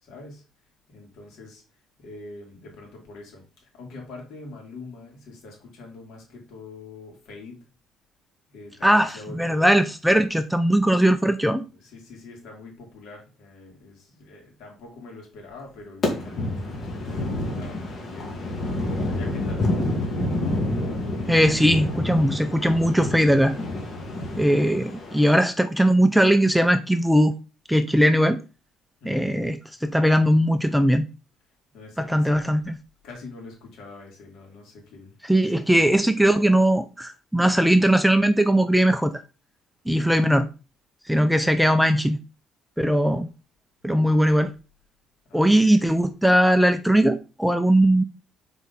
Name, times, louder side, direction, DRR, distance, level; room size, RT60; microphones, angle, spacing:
voice 1, 0.0-0.4 0.9-1.6 2.0-3.4 3.7-7.6 8.5-9.7 11.7-18.3 19.0-20.2 24.2-24.5 29.0-29.5 31.7-32.4 33.0-35.1 35.4-35.9 43.0-43.2 45.3-45.9, left 3 dB, 70° left, 3.1 m, -44 dB
voice 2, 8.8-11.6 21.3-23.5 24.4-27.3 27.7-28.4 29.0-31.1 32.0-32.8 35.2-39.2 39.9-40.5 41.1-42.2 42.8-43.3 43.8-44.5 45.3-48.0, equal, ahead, 0.5 m, -19 dB
sound 1, 16.0-25.4, left 1 dB, 40° left, 2.1 m, -28 dB
6.1 x 4.8 x 4.1 m
cardioid pair, 125°, 0 cm